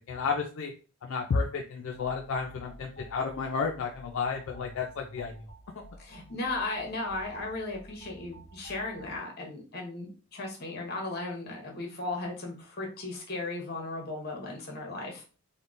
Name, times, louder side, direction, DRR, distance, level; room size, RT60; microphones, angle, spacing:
voice 1, 0.1-0.7 1.0-5.3, left 5 dB, 60° left, 1 dB, 0.3 m, -31 dB
sound 1, 1.9-9.2, right 1 dB, 20° left, 1.1 m, -51 dB
voice 2, 6.0-15.2, left 2 dB, 45° left, 1 dB, 0.8 m, -36 dB
3.5 x 2.1 x 2.5 m, 0.36 s
head